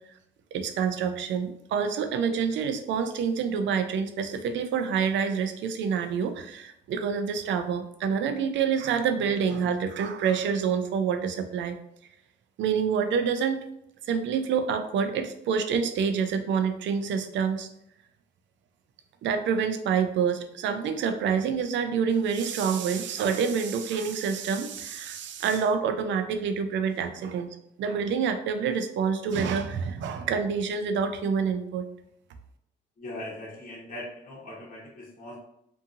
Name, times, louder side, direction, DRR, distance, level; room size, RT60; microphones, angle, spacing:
voice 1, 0.5-11.8 12.6-13.6 14.1-17.7 19.2-27.5 27.8-31.8, right 6 dB, 70° right, 8 dB, 0.4 m, -27 dB
voice 2, 33.0-35.4, left 1 dB, 40° left, -6 dB, 1.1 m, -40 dB
2.8 x 2.6 x 2.5 m, 0.76 s
cardioid pair, 90°, 20 cm